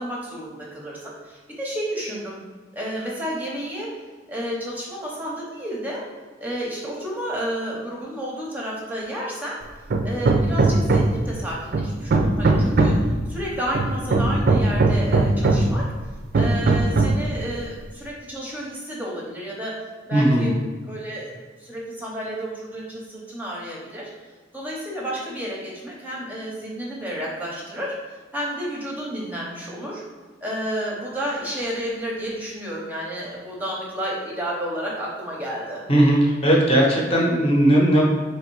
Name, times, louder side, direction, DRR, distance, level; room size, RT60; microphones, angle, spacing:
voice 1, 0.0-2.4 2.7-3.9 4.3-6.0 6.4-9.6 10.0-12.9 13.3-15.8 16.3-19.7 20.1-20.6 20.9-24.1 24.5-30.0 30.4-35.8, equal, 10° right, -4 dB, 0.7 m, -31 dB
Hammer, 9.9-11.3 11.7-13.1 13.7-15.8 16.3-17.3, right 2 dB, 55° right, 0.4 m, -19 dB
voice 2, 20.1-20.5 35.9-38.0, right 1 dB, 30° left, -2 dB, 0.8 m, -17 dB
3.5 x 3.3 x 4.5 m, 1.4 s
head